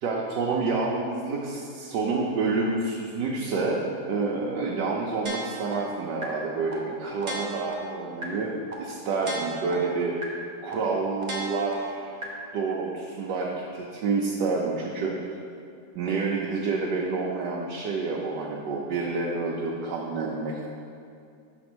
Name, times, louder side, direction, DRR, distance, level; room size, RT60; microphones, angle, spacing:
voice 1, 0.0-10.2 10.6-12.1 12.5-15.1 15.9-20.7, right 4 dB, 75° right, -3 dB, 1.3 m, -28 dB
sound 1, 5.3-5.7 6.2-6.3 6.7-6.8 7.2-7.7 8.2-8.3 8.7-8.8 9.2-9.7 10.2-10.3 10.7-10.8 11.2-11.7 12.2-12.3, right 2 dB, 40° right, 0.6 m, -33 dB
6.1 x 4.3 x 6.0 m, 2.4 s
omnidirectional pair, 1.9 m